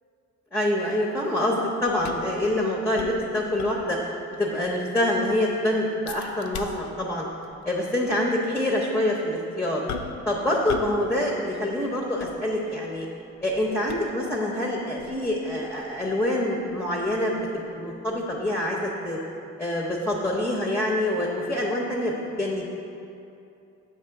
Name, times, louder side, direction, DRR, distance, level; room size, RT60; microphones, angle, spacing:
voice 1, 0.5-4.0 4.4-7.2 7.6-9.8 10.3-13.1 13.4-19.2 19.6-22.1 22.4-22.7, left 1 dB, 5° left, -3 dB, 0.7 m, -26 dB
sound 1, 1.9-4.2 4.5-4.6 5.0-5.4 6.1-7.1 7.4-7.6 8.3-8.4 9.9-10.3 10.7-11.1 11.3-12.9 13.4-14.4 15.0-17.8 18.1-18.2, left 6 dB, 70° left, 0.5 m, -40 dB
7.3 x 3.0 x 5.8 m, 2.7 s
cardioid pair, 90°, 30 cm